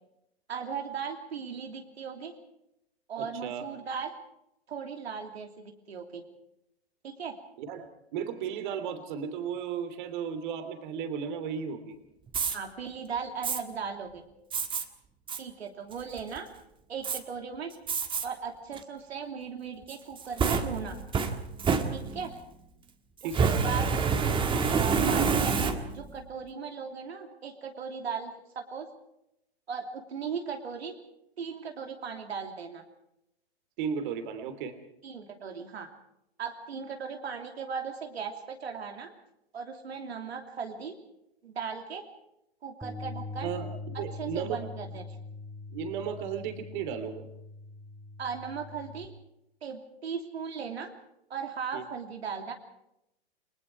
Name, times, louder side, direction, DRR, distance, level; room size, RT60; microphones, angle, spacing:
voice 1, 0.5-2.3 3.1-4.1 4.7-6.2 7.0-7.4 12.5-14.2 15.4-16.5 16.9-17.7 18.2-21.0 21.9-22.3 23.2-24.0 24.7-28.9 29.7-30.9 31.4-32.8 35.0-35.9 36.4-39.1 39.5-41.0 41.4-42.0 42.6-43.5 43.9-45.2 48.2-49.1 49.6-50.9 51.3-52.5, right 6 dB, 75° right, 4 dB, 3.0 m, -37 dB
voice 2, 3.2-3.6 7.6-11.9 23.2-23.5 33.8-34.8 43.4-43.7 43.9-44.6 45.7-47.3 51.7-51.8, right 7 dB, 50° right, 9 dB, 3.2 m, -35 dB
Fire, 12.3-12.6 13.4-13.6 14.5-14.8 15.3-15.4 15.9-16.4 17.0-17.2 17.9-18.2 18.7-18.8 19.9-22.4 23.2-26.1, right 5 dB, 15° right, 1.6 m, -27 dB
Bass guitar, 42.8-49.1, left 3 dB, ahead, 1.5 m, -42 dB
30.0 x 20.0 x 4.7 m, 0.83 s
hypercardioid pair, 120°, 32 cm